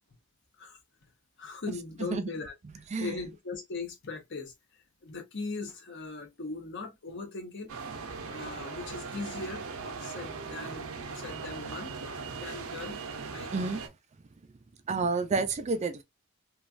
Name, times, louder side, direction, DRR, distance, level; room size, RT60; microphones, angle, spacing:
voice 1, 1.4-4.5 5.0-7.7 8.3-9.6 10.0-11.9 12.3-13.0 13.3-13.7, left 3 dB, 55° left, 0.9 m, -39 dB
sound 1, 7.7-13.9, right 4 dB, 85° right, 0.6 m, -39 dB
voice 2, 14.9-16.0, right 4 dB, 30° right, 0.4 m, -29 dB
3.1 x 2.3 x 2.4 m
head